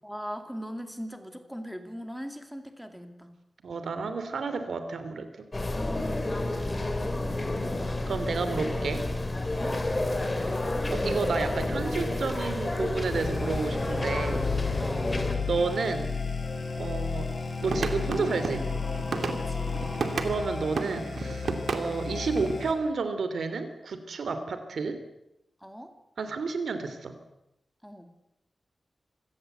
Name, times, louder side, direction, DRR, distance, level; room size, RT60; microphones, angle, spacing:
voice 1, 0.0-3.4 5.7-7.2 9.5-9.8 14.8-15.2 19.3-19.8 25.6-25.9 27.8-28.1, equal, ahead, 7 dB, 2.5 m, -40 dB
voice 2, 3.6-5.5 7.0-7.2 8.1-9.0 10.5-10.6 10.9-14.5 15.5-16.1 16.8-17.3 17.6-18.7 20.2-25.0 26.2-27.2, right 4 dB, 90° right, 10 dB, 2.9 m, -31 dB
sound 1, 5.5-15.4, left 2 dB, 25° left, 3.0 m, -30 dB
sound 2, 13.1-22.7, left 4 dB, 60° left, 5.5 m, -33 dB
sound 3, 17.6-20.4 20.8-22.7, right 4 dB, 75° right, 2.6 m, -32 dB
26.5 x 17.5 x 8.0 m, 0.87 s
wide cardioid pair, 135°, 0 cm